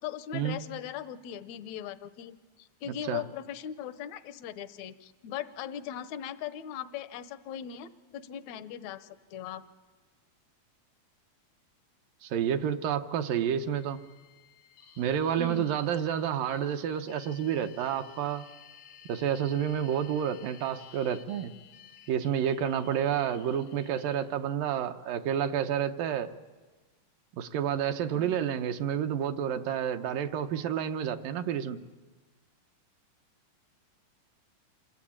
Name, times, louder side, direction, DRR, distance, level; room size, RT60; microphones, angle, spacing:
voice 1, 0.0-9.6 15.4-15.7 28.1-28.4, left 9 dB, 70° left, 12 dB, 1.8 m, -39 dB
voice 2, 12.2-14.0 15.0-18.4 19.1-21.5 22.1-26.3 27.3-31.8, right 9 dB, 75° right, 7 dB, 2.5 m, -29 dB
sound 1, 13.7-24.2, left 9 dB, 85° left, 5.0 m, -55 dB
27.0 x 24.0 x 8.7 m, 1.3 s
omnidirectional pair, 4.1 m